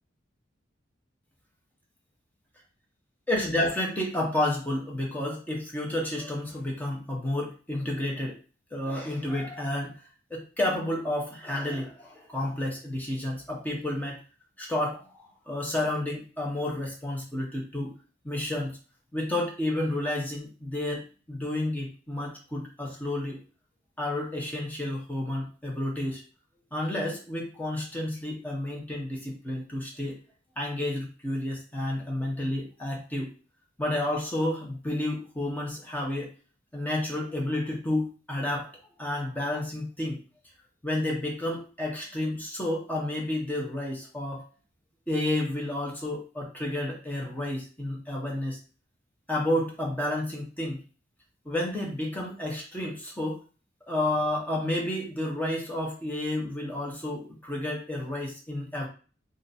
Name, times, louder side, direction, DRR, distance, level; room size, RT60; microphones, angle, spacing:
voice 1, 3.3-8.4 8.7-9.9 10.3-14.2 14.6-15.0 15.5-17.9 18.2-18.7 19.1-21.0 21.3-23.4 24.0-26.2 26.7-30.2 30.6-33.3 33.8-36.3 36.7-38.7 39.0-40.2 40.8-44.4 45.1-48.6 49.3-50.8 51.4-53.4 53.9-58.9, left 1 dB, 10° left, -2 dB, 1.0 m, -30 dB
2.9 x 2.6 x 4.1 m, 0.36 s
head